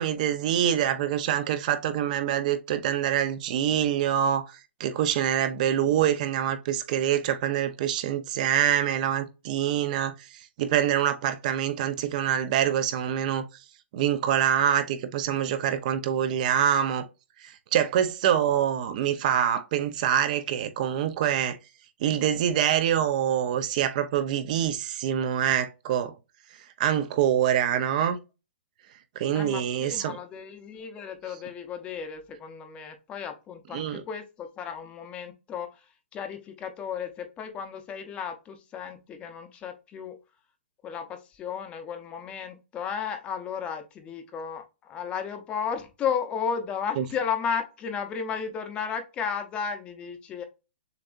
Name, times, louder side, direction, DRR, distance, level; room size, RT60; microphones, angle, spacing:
voice 1, 0.0-4.5 4.8-10.1 10.6-13.5 13.9-17.0 17.7-21.6 22.0-26.1 26.8-28.2 29.2-30.2 33.7-34.0 47.0-47.1, right 10 dB, 40° right, 0.7 m, -25 dB
voice 2, 29.3-35.7 36.1-40.2 40.8-50.4, left 7 dB, 15° left, 0.7 m, -34 dB
6.9 x 2.8 x 2.5 m
hypercardioid pair, 155°, 6 cm